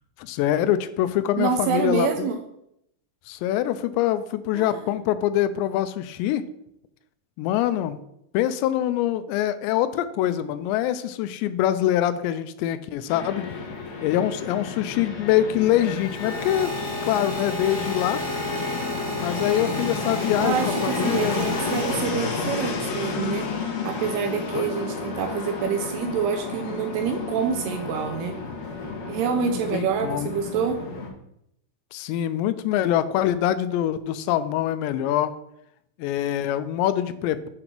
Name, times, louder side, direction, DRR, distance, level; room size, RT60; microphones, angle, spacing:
voice 1, 0.2-2.3 3.3-6.4 7.4-8.0 8.3-13.6 14.0-16.7 17.1-18.2 19.2-20.6 20.8-21.5 24.5-24.7 29.4-30.3 31.9-35.3 36.0-37.5, left 12 dB, 85° left, 13 dB, 2.7 m, -24 dB
voice 2, 1.4-2.4 4.6-4.8 20.4-23.5 23.8-28.3 29.1-30.8, right 6 dB, 80° right, 5 dB, 2.4 m, -27 dB
Fixed-wing aircraft airplane, 13.1-31.1, left 4 dB, 65° left, 3.0 m, -31 dB
sound 1, 15.6-22.5 23.3-23.6, equal, 20° left, 0.7 m, -33 dB
7.8 x 3.9 x 5.9 m, 0.77 s
omnidirectional pair, 5.0 m